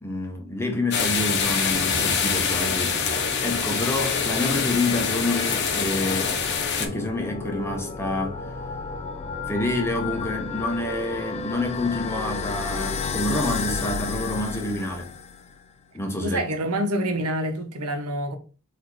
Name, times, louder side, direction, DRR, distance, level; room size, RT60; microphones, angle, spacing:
voice 1, 0.0-6.4 6.8-8.4 9.5-15.1 15.9-16.4, left 2 dB, 10° left, 0.8 m, -28 dB
sound 1, 0.9-6.9, left 6 dB, 50° left, 0.8 m, -25 dB
sound 2, 1.8-15.6, left 4 dB, 30° left, 0.4 m, -33 dB
voice 2, 16.2-18.4, right 1 dB, 90° right, 0.9 m, -26 dB
4.1 x 2.7 x 4.7 m
head